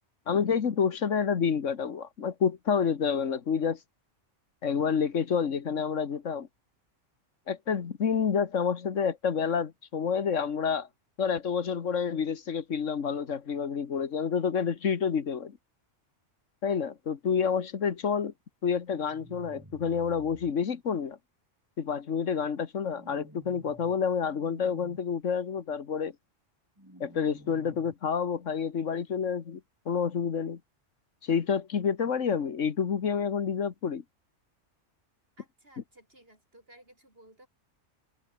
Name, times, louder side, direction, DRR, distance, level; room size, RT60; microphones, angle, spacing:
voice 1, 0.3-3.8 4.6-6.5 7.5-10.9 11.2-15.5 16.6-18.3 18.6-21.2 21.8-26.1 27.0-29.6 29.8-30.6 31.2-34.0, left 6 dB, 80° left, 1.7 m, -28 dB
sound 1, 19.1-20.5 22.8-23.9 24.3-25.0 26.8-27.9, equal, 15° right, 7.5 m, -52 dB
voice 2, 35.4-37.5, right 1 dB, 50° right, 7.7 m, -57 dB
omnidirectional pair, 1.3 m